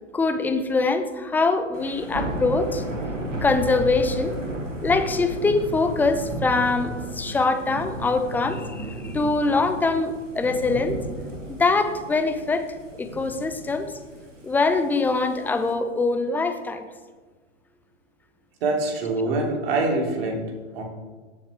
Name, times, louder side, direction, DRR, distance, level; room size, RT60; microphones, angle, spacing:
voice 1, 0.1-2.8 3.4-4.3 4.8-11.0 11.5-12.7 13.0-13.9 14.4-16.8, left 3 dB, 5° left, 8 dB, 0.5 m, -23 dB
Thunder / Rain, 1.7-15.7, right 1 dB, 80° right, 2.3 m, -34 dB
voice 2, 18.6-20.4 20.7-20.8, right 2 dB, 50° right, 1 dB, 3.0 m, -24 dB
18.0 x 7.3 x 3.4 m, 1.4 s
figure-of-eight pair, 105°, 37 cm